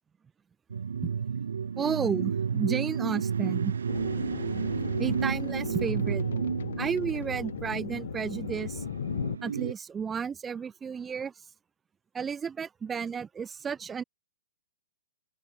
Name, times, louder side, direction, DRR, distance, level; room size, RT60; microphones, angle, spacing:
sound 1, 0.7-9.7, right 6 dB, 90° right, 1.2 m, -32 dB
voice 1, 1.8-3.7 5.0-6.2 6.8-8.8 9.4-11.3 12.1-14.0, right 6 dB, 10° right, 1.3 m, -32 dB
sound 2, 3.9-9.4, left 8 dB, 75° left, 3.1 m, -37 dB
open air
hypercardioid pair, 155°, 0 cm